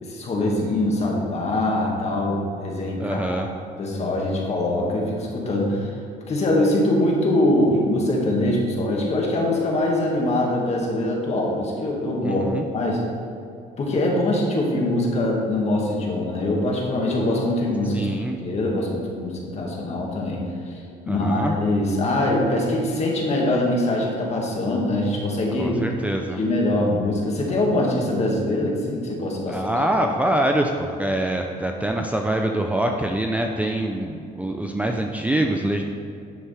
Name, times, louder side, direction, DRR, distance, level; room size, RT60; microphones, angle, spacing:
voice 1, 0.0-3.4 3.8-5.9 6.3-12.5 12.7-13.0 13.8-18.1 18.4-25.8 26.4-29.7, left 1 dB, 40° left, -2 dB, 2.1 m, -23 dB
voice 2, 3.0-3.5 12.2-12.6 17.9-18.4 21.1-21.5 25.6-26.4 29.5-35.8, right 1 dB, 10° right, 2 dB, 0.5 m, -24 dB
11.0 x 6.9 x 3.5 m, 2.6 s
cardioid pair, 110°, 17 cm